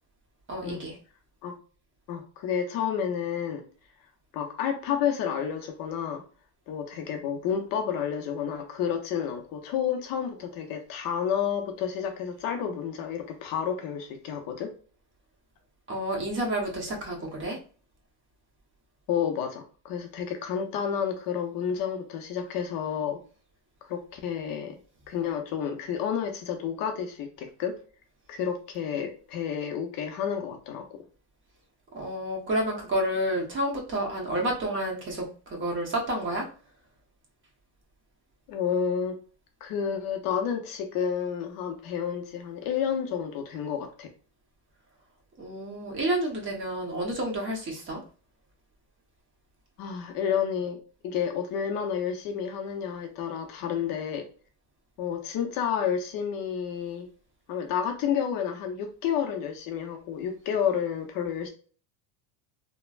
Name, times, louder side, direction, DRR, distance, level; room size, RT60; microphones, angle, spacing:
voice 1, 0.5-1.0 15.9-17.6 31.9-36.5 45.4-48.0, right 1 dB, 25° right, -1 dB, 1.0 m, -30 dB
voice 2, 2.1-3.6 4.3-6.2 6.7-14.7 19.1-23.2 23.8-24.8 25.1-27.8 28.3-30.9 38.5-39.2 39.6-44.1 49.8-54.2 55.0-57.1 57.5-61.5, left 8 dB, 50° left, 4 dB, 0.6 m, -30 dB
3.2 x 2.1 x 2.4 m, 0.40 s
supercardioid pair, 110°, 46 cm